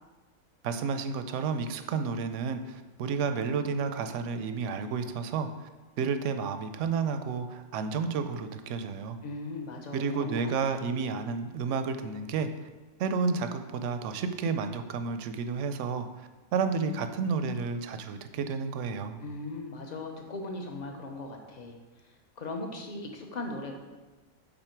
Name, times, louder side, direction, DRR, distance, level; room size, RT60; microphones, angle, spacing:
voice 1, 0.6-5.7 6.0-9.2 9.9-12.5 13.0-19.2, right 5 dB, 70° right, 9 dB, 0.8 m, -31 dB
voice 2, 9.2-11.1 19.2-23.7, left 2 dB, 35° left, 2 dB, 0.9 m, -39 dB
7.9 x 4.1 x 4.5 m, 1.2 s
omnidirectional pair, 1.4 m